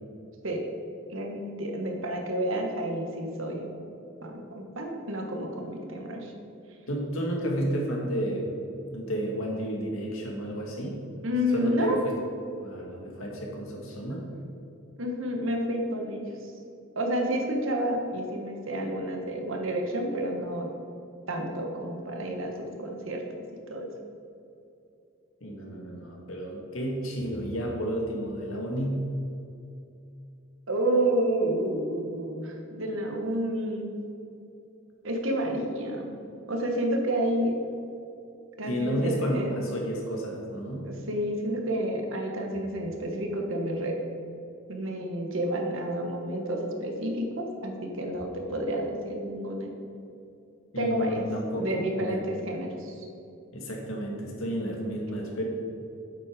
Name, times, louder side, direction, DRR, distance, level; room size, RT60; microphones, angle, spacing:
voice 1, 1.1-3.7 4.2-6.3 11.2-12.0 15.0-16.3 16.9-20.7 21.3-23.2 23.7-23.9 30.7-33.9 35.0-36.1 36.5-37.5 38.6-39.5 40.8-44.0 44.7-49.7 50.8-51.2 51.6-52.9, right 1 dB, 65° right, 2 dB, 1.4 m, -30 dB
voice 2, 6.9-8.6 8.9-11.0 11.5-12.0 12.6-14.3 25.4-29.1 38.7-40.9 50.7-52.2 53.5-55.4, equal, 75° left, -1 dB, 2.0 m, -31 dB
8.4 x 7.8 x 5.1 m, 2.7 s
head